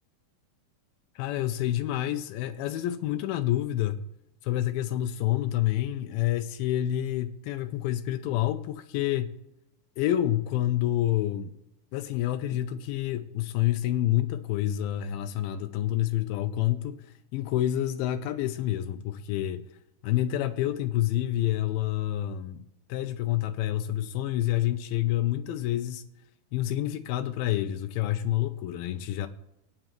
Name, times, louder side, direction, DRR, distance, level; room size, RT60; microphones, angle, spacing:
voice 1, 1.2-4.0 4.4-9.3 10.0-11.5 11.9-19.6 20.0-22.6 22.9-26.1 26.5-29.3, left 13 dB, 90° left, 2.1 m, -28 dB
18.5 x 8.8 x 3.0 m
omnidirectional pair, 4.8 m